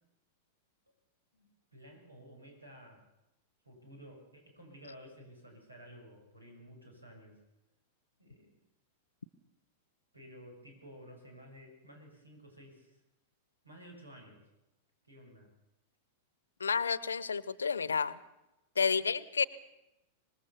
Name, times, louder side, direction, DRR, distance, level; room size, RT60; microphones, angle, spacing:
voice 1, 1.3-3.0 3.6-7.4 8.2-8.6 10.1-13.0 13.6-14.4 15.0-15.5, equal, 85° right, 2 dB, 7.1 m, -53 dB
voice 2, 16.6-18.2 18.8-19.4, left 5 dB, 75° left, 18 dB, 0.9 m, -30 dB
25.5 x 20.5 x 7.0 m, 0.95 s
figure-of-eight pair, 95°, 0 cm